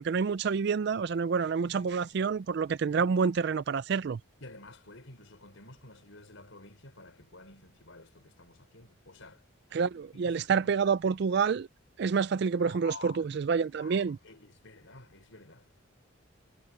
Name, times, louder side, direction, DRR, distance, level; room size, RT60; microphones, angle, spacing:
voice 1, 0.0-4.2 9.7-11.7 12.0-14.2, right 5 dB, 50° right, 0.3 m, -28 dB
voice 2, 1.7-2.1 4.4-9.4 10.2-10.7 12.6-13.3 13.8-15.7, left 3 dB, 70° left, 4.9 m, -51 dB
head